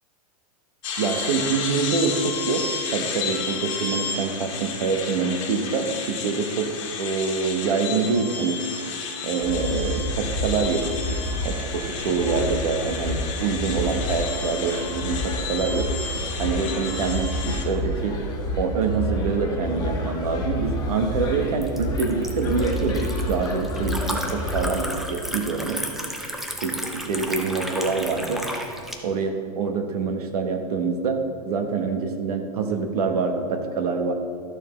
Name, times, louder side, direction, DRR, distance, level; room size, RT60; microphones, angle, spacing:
sound 1, 0.8-17.6, left 5 dB, 55° left, 1.4 m, -32 dB
voice 1, 1.0-6.7 7.0-8.6 9.2-10.8 11.4-15.9 16.4-18.2 18.6-25.8 26.6-28.4 29.0-31.2 31.4-34.1, right 5 dB, 80° right, 5 dB, 1.1 m, -25 dB
sound 2, 9.4-24.8, equal, 20° left, 1.0 m, -29 dB
Liquid, 20.6-29.0, equal, ahead, 0.4 m, -34 dB
11.5 x 6.5 x 3.2 m, 2.2 s
supercardioid pair, 150°, 19 cm